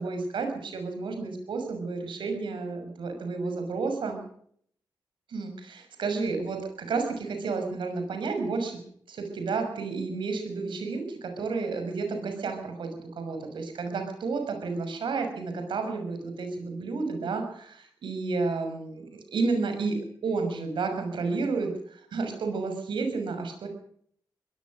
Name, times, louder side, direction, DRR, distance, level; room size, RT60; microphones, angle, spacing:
voice 1, 0.0-4.2 5.3-8.8 9.1-23.7, right 4 dB, 90° right, 5 dB, 6.2 m, -31 dB
23.5 x 18.0 x 6.6 m, 0.63 s
wide cardioid pair, 125°, 8 cm